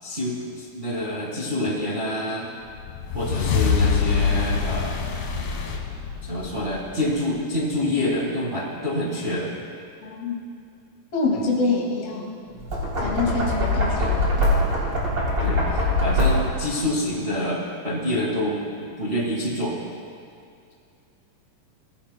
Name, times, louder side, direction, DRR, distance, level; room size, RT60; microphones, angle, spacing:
voice 1, 0.0-2.5 3.1-5.0 6.2-9.6 11.3-11.5 14.0-14.1 15.4-15.6 16.0-19.8, left 1 dB, 70° right, -4 dB, 0.5 m, -27 dB
sound 1, 2.7-7.3, left 6 dB, 65° left, 1.8 m, -25 dB
voice 2, 10.0-10.4 11.1-12.3 13.0-14.5, left 3 dB, 45° left, -3 dB, 2.8 m, -26 dB
Knock, 12.5-16.7, left 1 dB, 30° right, 3.4 m, -22 dB
20.5 x 15.5 x 2.2 m, 2.4 s
omnidirectional pair, 4.2 m